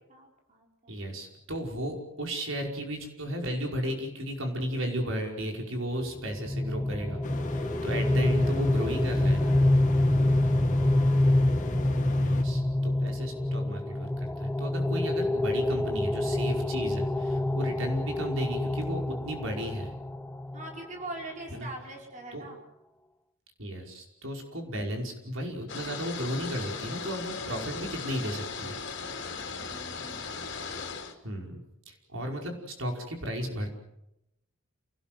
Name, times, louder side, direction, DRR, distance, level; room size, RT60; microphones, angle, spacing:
voice 1, 0.1-0.6 7.9-8.1 10.3-10.7 17.6-17.8 20.5-22.6 29.3-30.3, right 2 dB, 35° right, 0 dB, 4.9 m, -43 dB
voice 2, 0.9-7.2 7.5-9.7 12.2-19.9 21.5-21.7 22.3-22.5 23.6-28.8 31.2-33.7, equal, 70° right, 2 dB, 5.3 m, -34 dB
sound 1, 6.0-20.8, left 1 dB, 10° left, 0.8 m, -27 dB
sound 2, 7.2-12.4, left 2 dB, 40° left, 1.9 m, -38 dB
sound 3, 25.7-31.1, left 5 dB, 55° left, 3.3 m, -37 dB
28.5 x 19.0 x 7.7 m, 0.84 s
head